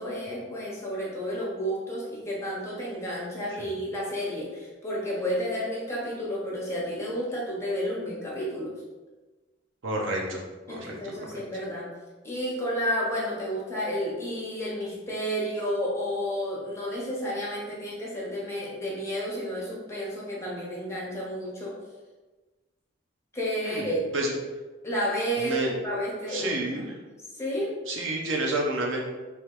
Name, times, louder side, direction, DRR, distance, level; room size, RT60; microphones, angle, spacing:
voice 1, 0.0-8.7 10.7-11.9 12.2-21.8 23.3-24.1 24.8-26.9 27.3-27.7, equal, 15° left, -5 dB, 1.2 m, -31 dB
voice 2, 9.8-10.4 10.7-11.3 23.6-24.3 25.4-25.7 26.3-26.9 27.9-29.0, right 1 dB, 85° right, -1 dB, 0.9 m, -30 dB
3.3 x 3.1 x 4.7 m, 1.2 s
head